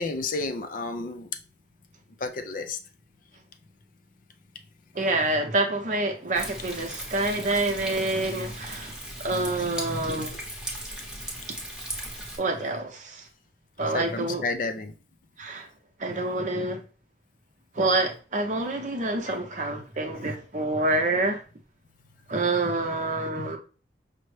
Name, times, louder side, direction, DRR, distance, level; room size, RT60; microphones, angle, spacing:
voice 1, 0.0-1.4 2.2-2.8 7.4-7.5 13.8-15.0 19.0-19.7, left 3 dB, 50° left, 0.4 m, -32 dB
voice 2, 4.9-8.9 9.2-10.4 12.4-13.2 13.8-14.4 15.4-15.7 16.0-16.8 17.7-21.4 22.3-23.6, right 2 dB, 45° right, 0.7 m, -27 dB
Thunder, 6.3-12.4, equal, 5° right, 0.8 m, -37 dB
5.3 x 2.1 x 3.1 m
head